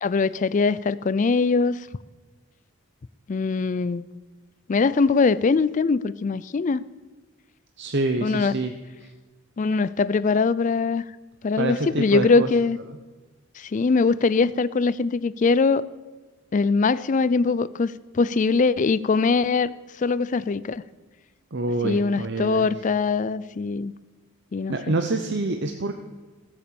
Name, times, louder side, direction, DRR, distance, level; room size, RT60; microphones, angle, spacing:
voice 1, 0.0-1.8 3.3-4.0 4.7-6.8 8.2-8.5 9.6-11.0 11.4-12.8 13.6-15.9 16.5-20.8 21.8-23.9 24.5-25.0, left 4 dB, 35° left, 17 dB, 0.4 m, -22 dB
voice 2, 7.8-8.7 9.0-9.1 11.6-12.5 21.5-22.6 24.7-26.0, right 2 dB, 55° right, 5 dB, 0.8 m, -26 dB
16.5 x 8.7 x 6.9 m, 1.3 s
head